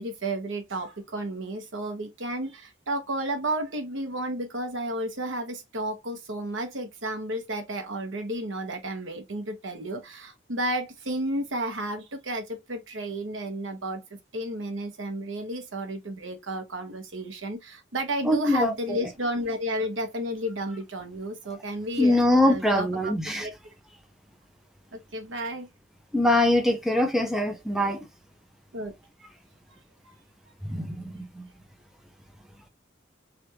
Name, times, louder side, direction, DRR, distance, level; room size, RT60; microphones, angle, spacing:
voice 1, 0.0-14.0 14.3-23.5 24.9-25.7 28.7-28.9 30.0-30.1, right 1 dB, 85° right, 1.0 m, -32 dB
voice 2, 18.3-19.0 22.0-23.5 26.1-28.0 30.6-31.4, left 1 dB, ahead, 0.6 m, -23 dB
3.3 x 2.5 x 2.8 m
head